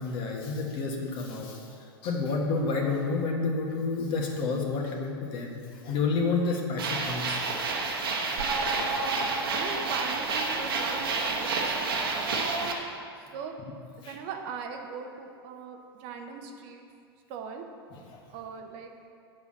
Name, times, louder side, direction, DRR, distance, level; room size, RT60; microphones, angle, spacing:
voice 1, 0.0-7.6 8.9-9.2 12.5-12.6 14.0-14.2 17.9-18.2, left 4 dB, 40° left, 1 dB, 1.6 m, -30 dB
sound 1, 6.8-12.7, right 3 dB, 65° right, 1.3 m, -29 dB
voice 2, 9.1-12.7 13.3-13.6 14.0-16.8 17.3-17.7 18.3-18.9, right 6 dB, 45° right, 4 dB, 1.0 m, -40 dB
8.0 x 5.6 x 7.5 m, 2.4 s
figure-of-eight pair, 95°, 13 cm